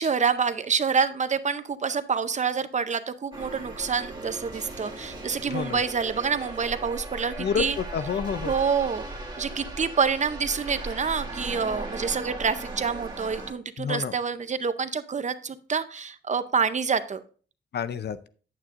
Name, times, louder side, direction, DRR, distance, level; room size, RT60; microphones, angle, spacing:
voice 1, 0.0-7.8 8.4-9.1 9.4-17.2, right 6 dB, 40° right, 12 dB, 0.6 m, -27 dB
sound 1, 3.3-13.5, right 2 dB, 25° right, 1.9 m, -37 dB
voice 2, 7.4-8.5 13.8-14.1 17.7-18.3, left 7 dB, 60° left, 14 dB, 0.5 m, -29 dB
9.0 x 8.7 x 2.5 m, 0.40 s
wide cardioid pair, 125°, 19 cm